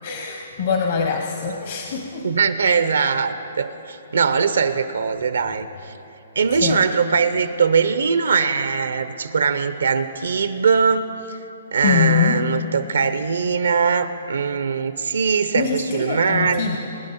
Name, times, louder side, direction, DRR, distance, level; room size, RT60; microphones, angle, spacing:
voice 1, 0.0-2.3 2.8-2.9 3.5-3.6 6.5-6.8 11.8-12.4 15.5-16.8, left 7 dB, 55° left, 3 dB, 1.0 m, -23 dB
voice 2, 2.2-5.9 6.4-11.4 11.7-16.7, right 5 dB, 85° right, 11 dB, 0.7 m, -21 dB
21.0 x 9.9 x 4.2 m, 2.9 s
hypercardioid pair, 145°, 0 cm